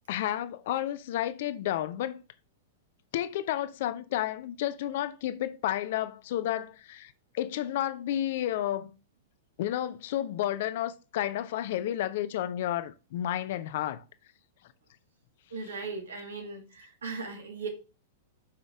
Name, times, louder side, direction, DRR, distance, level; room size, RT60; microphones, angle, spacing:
voice 1, 0.1-2.2 3.1-8.9 9.6-14.0, left 12 dB, 50° left, 0.5 m, -31 dB
voice 2, 15.5-17.7, right 4 dB, 70° right, 2.0 m, -38 dB
5.8 x 5.0 x 3.5 m
figure-of-eight pair, 100°, 0 cm